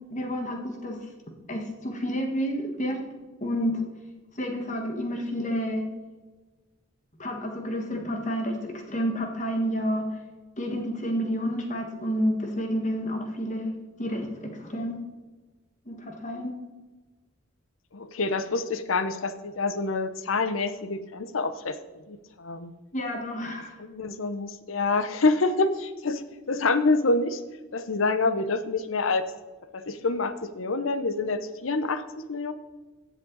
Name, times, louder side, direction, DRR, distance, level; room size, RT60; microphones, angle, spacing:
voice 1, 0.1-1.0 1.5-3.0 3.4-3.7 4.4-5.8 7.2-10.0 10.6-13.7 14.0-15.0 15.9-16.5 22.9-23.8, equal, 35° left, 3 dB, 1.5 m, -29 dB
voice 2, 17.9-21.8 22.1-22.7 23.8-26.2 26.5-27.4 27.7-29.3 29.7-32.5, left 3 dB, 85° left, 11 dB, 0.8 m, -27 dB
15.5 x 7.5 x 4.0 m, 1.3 s
head